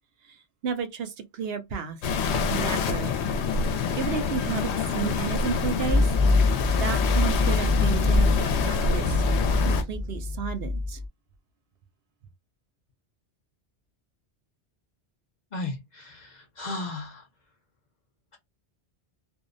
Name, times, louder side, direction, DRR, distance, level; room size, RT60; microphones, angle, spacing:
voice 1, 0.2-2.0 2.5-3.1 3.9-6.1 6.4-6.5 6.8-9.2 9.6-11.0, right 7 dB, 70° right, 0.8 m, -32 dB
sound 1, 2.0-9.8, left 5 dB, 80° left, 0.8 m, -26 dB
sound 2, 5.9-11.1, left 2 dB, 35° right, 0.8 m, -24 dB
voice 2, 15.5-17.2, left 2 dB, 50° left, 0.7 m, -35 dB
2.6 x 2.0 x 2.5 m
omnidirectional pair, 1.1 m